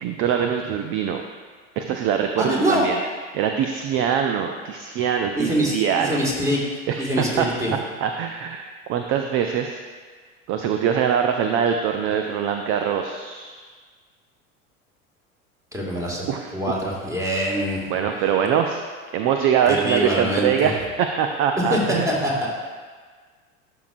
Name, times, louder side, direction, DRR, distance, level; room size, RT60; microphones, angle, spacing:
voice 1, 0.0-1.2 1.8-3.0 3.3-6.2 6.9-9.8 10.5-13.6 16.3-16.5 17.9-18.8 19.1-22.1, right 8 dB, 30° right, 5 dB, 0.4 m, -23 dB
voice 2, 2.4-2.8 5.4-6.6 7.0-7.7 15.7-16.3 16.5-17.8 19.7-20.7 21.7-22.5, equal, 5° right, -4 dB, 1.9 m, -24 dB
11.5 x 6.2 x 2.5 m, 1.5 s
figure-of-eight pair, 75°, 41 cm